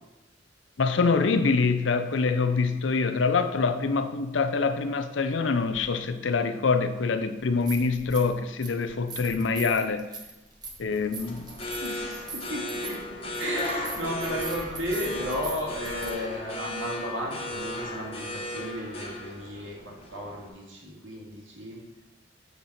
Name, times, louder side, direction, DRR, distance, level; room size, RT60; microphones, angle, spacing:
voice 1, 0.8-10.1 10.8-11.5, left 4 dB, 85° left, 9 dB, 0.6 m, -25 dB
sound 1, 7.4-8.3 8.6-16.1, right 3 dB, 20° right, 1.1 m, -41 dB
sound 2, 10.9-20.5, left 1 dB, 30° left, 1.1 m, -36 dB
voice 2, 11.8-21.8, equal, 80° right, -3 dB, 2.5 m, -34 dB
7.5 x 6.4 x 4.4 m, 1.0 s
head